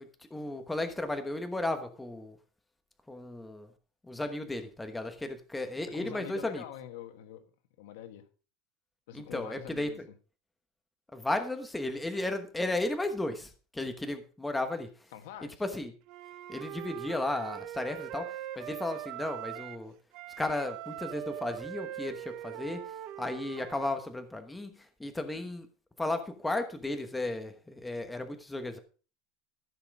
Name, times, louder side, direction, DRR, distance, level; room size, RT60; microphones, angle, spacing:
voice 1, 0.0-2.4 3.1-3.7 4.1-6.6 9.1-10.1 11.1-14.9 15.6-15.9 16.5-18.3 18.6-19.9 20.4-22.8 23.2-24.7 25.0-25.7 26.0-28.8, left 2 dB, 5° left, 1.2 m, -34 dB
voice 2, 5.9-7.4 7.8-8.2 9.1-10.0 15.1-15.6, left 11 dB, 85° left, 1.4 m, -45 dB
Wind instrument woodwind instrument, 16.1-19.8 20.1-24.0, right 13 dB, 50° right, 0.8 m, -41 dB
14.5 x 5.8 x 4.7 m
cardioid pair, 155°, 0 cm